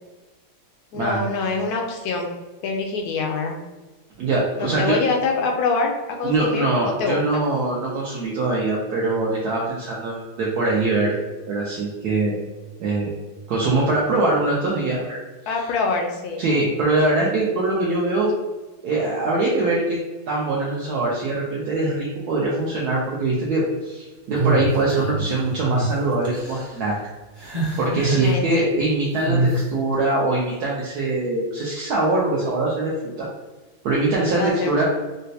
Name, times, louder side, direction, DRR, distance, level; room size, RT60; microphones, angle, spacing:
voice 1, 0.9-2.3 2.6-3.6 4.6-7.4 15.5-16.4 28.2-28.7 34.3-34.8, left 3 dB, 70° left, 2 dB, 0.9 m, -25 dB
voice 2, 4.2-5.0 6.2-11.1 11.5-12.4 12.8-13.1 13.5-15.2 16.4-18.3 18.8-20.0 20.3-26.9 27.8-32.9 33.2-33.3 33.8-34.8, right 2 dB, 70° right, -5 dB, 1.0 m, -22 dB
sound 1, 24.3-25.2 25.6-25.9 26.2-26.7 27.4-28.3 29.2-29.6, right 2 dB, 35° right, 0.3 m, -24 dB
3.9 x 2.1 x 2.7 m, 1.2 s
omnidirectional pair, 2.0 m